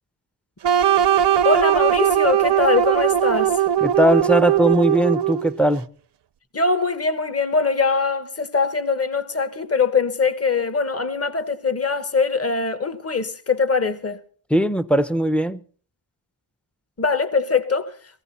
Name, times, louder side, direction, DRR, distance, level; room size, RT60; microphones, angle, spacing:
sound 1, 0.6-5.6, right 10 dB, 60° right, 0.7 m, -19 dB
voice 1, 1.4-3.6 6.5-14.2 17.0-17.9, left 4 dB, 30° left, 1.2 m, -22 dB
voice 2, 3.8-5.8 14.5-15.6, right 1 dB, 5° left, 0.6 m, -19 dB
17.5 x 15.5 x 4.1 m
wide cardioid pair, 80°, 46 cm